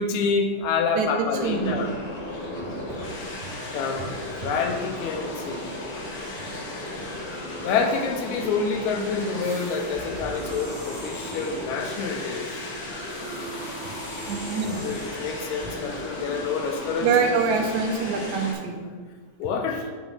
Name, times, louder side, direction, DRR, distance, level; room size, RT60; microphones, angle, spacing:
voice 1, 0.0-1.9 3.7-5.8 7.6-12.7 14.8-17.1 17.6-17.7 19.4-19.9, left 5 dB, 85° left, 4 dB, 2.1 m, -27 dB
sound 1, 1.3-18.5, left 1 dB, 50° left, 1.3 m, -35 dB
voice 2, 1.4-1.8 2.9-3.0 3.4-3.5 13.8-13.9 14.3-14.8 17.0-18.9, right 5 dB, 80° right, 3 dB, 2.2 m, -25 dB
sound 2, 9.4-11.8 13.1-15.7, right 2 dB, 35° right, 2.2 m, -44 dB
8.8 x 3.1 x 5.5 m, 1.5 s
omnidirectional pair, 3.3 m